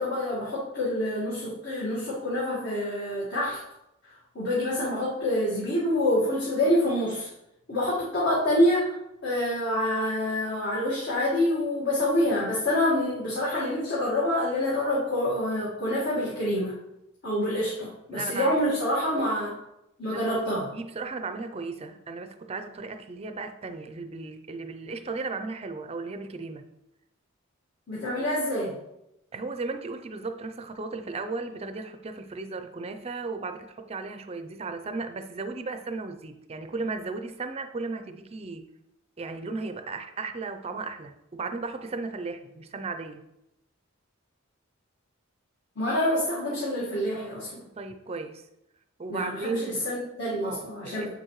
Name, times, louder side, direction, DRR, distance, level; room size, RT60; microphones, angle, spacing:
voice 1, 0.0-3.6 4.0-7.3 7.7-8.9 9.2-16.7 17.2-19.5 20.0-20.7 27.9-28.8 45.8-47.6 49.1-51.1, left 1 dB, 55° left, -6 dB, 1.7 m, -27 dB
voice 2, 18.1-18.5 20.0-26.7 29.3-38.7 39.2-43.2 47.6-48.5 49.0-49.9 50.4-51.1, right 3 dB, 30° right, 8 dB, 0.5 m, -35 dB
8.1 x 6.4 x 3.1 m, 0.87 s
head